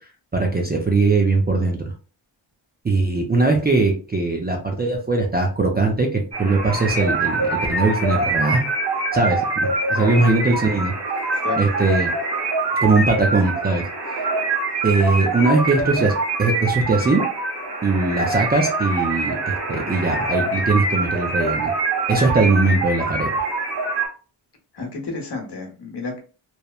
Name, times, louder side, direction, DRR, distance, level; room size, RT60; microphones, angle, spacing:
voice 1, 0.3-1.9 2.8-8.6 9.1-10.9 11.6-12.1 12.8-13.8 14.8-16.1 16.4-17.2 17.8-21.7 22.1-23.4, right 3 dB, 20° right, 1 dB, 0.4 m, -20 dB
sound 1, 6.3-24.1, right 3 dB, 55° right, 1.2 m, -24 dB
voice 2, 9.9-10.2 11.4-11.6 24.7-26.2, left 3 dB, 55° left, 2 dB, 1.0 m, -30 dB
2.9 x 2.0 x 2.3 m, 0.36 s
wide cardioid pair, 95°, 49 cm